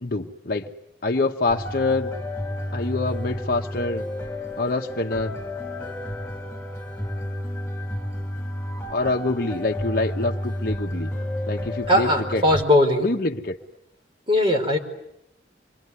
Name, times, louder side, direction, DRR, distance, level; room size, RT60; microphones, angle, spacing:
voice 1, 0.0-0.7 1.0-2.1 2.7-4.1 4.6-5.4 8.9-11.1 11.5-12.4 13.0-13.6, left 2 dB, 50° left, 2 dB, 1.0 m, -25 dB
sound 1, 1.5-12.6, left 1 dB, 10° left, 5.3 m, -31 dB
voice 2, 11.9-13.1 14.3-14.8, left 1 dB, 30° right, 2 dB, 4.6 m, -19 dB
27.0 x 23.0 x 9.7 m, 0.81 s
head